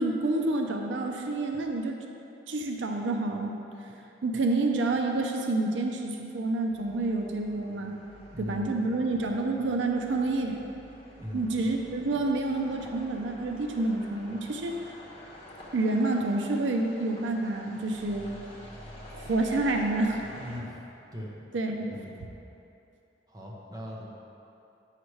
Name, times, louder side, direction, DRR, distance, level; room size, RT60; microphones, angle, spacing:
voice 1, 0.0-2.0 2.5-4.0 4.2-7.9 8.4-10.6 11.3-14.8 15.7-18.3 19.1-20.2 21.5-22.0, right 2 dB, 90° right, 2 dB, 0.5 m, -28 dB
sound 1, 6.7-20.6, equal, 35° left, 1.2 m, -49 dB
voice 2, 8.3-8.9 11.2-11.7 20.4-21.3 21.9-22.2 23.3-24.1, equal, 20° right, -4 dB, 0.9 m, -40 dB
7.9 x 5.7 x 3.2 m, 2.9 s
head